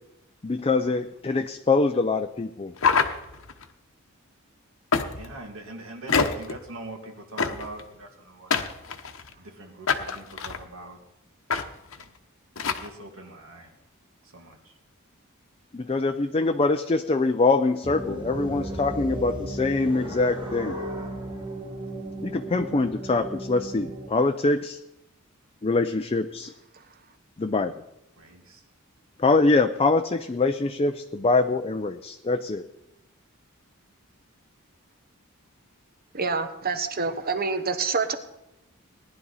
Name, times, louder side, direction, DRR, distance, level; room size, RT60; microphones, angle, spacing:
voice 1, 0.4-2.7 15.7-20.8 22.2-24.8 25.6-26.5 27.4-27.7 29.2-32.6, left 3 dB, 25° left, 0.5 m, -24 dB
sound 1, 2.8-3.6 4.9-5.4 6.1-6.6 7.4-7.8 8.5-9.3 9.9-10.6 11.5-11.6 11.9-12.0 12.6-12.9, left 5 dB, 70° left, 1.0 m, -25 dB
voice 2, 5.0-8.7 9.4-11.0 11.9-12.1 12.6-13.7 14.2-14.7 28.2-28.6, right 2 dB, 70° right, 2.4 m, -43 dB
sound 2, 17.8-24.1, right 1 dB, 25° right, 1.6 m, -35 dB
voice 3, 36.1-38.1, right 4 dB, 45° right, 1.1 m, -27 dB
18.5 x 11.0 x 4.1 m
head